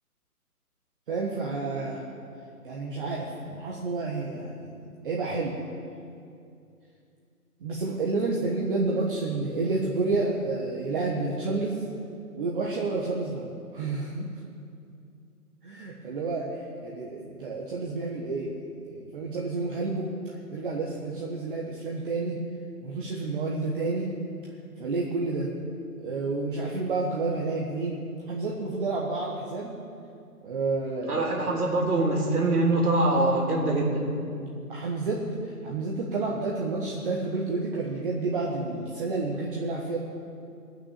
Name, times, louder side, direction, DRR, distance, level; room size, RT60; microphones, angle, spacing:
voice 1, 1.1-2.0 2.6-5.5 7.6-11.8 12.4-13.5 13.7-14.3 15.6-16.5 16.8-20.1 20.5-22.4 22.8-24.1 24.8-25.5 26.0-29.8 30.4-31.5 34.7-40.0, right 3 dB, 35° right, -3 dB, 1.4 m, -30 dB
voice 2, 31.1-34.1, right 2 dB, 75° right, -3 dB, 3.3 m, -24 dB
18.5 x 6.3 x 6.9 m, 2.5 s
figure-of-eight pair, 150°, 45 cm